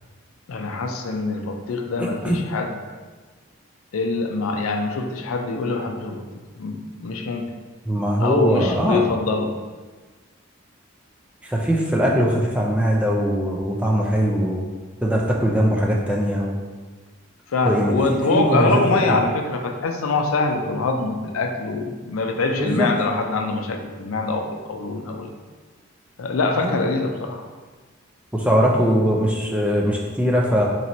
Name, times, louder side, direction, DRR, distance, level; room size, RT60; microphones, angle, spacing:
voice 1, 0.5-2.7 3.9-6.2 6.6-7.5 8.2-9.5 17.5-25.3 26.2-27.4, left 3 dB, 85° left, 4 dB, 0.4 m, -24 dB
voice 2, 2.0-2.4 7.9-9.0 11.4-14.6 15.0-16.5 17.6-19.2 22.5-22.9 26.5-26.8 28.3-30.7, equal, 5° right, -2 dB, 0.3 m, -21 dB
4.3 x 3.0 x 2.6 m, 1.4 s
head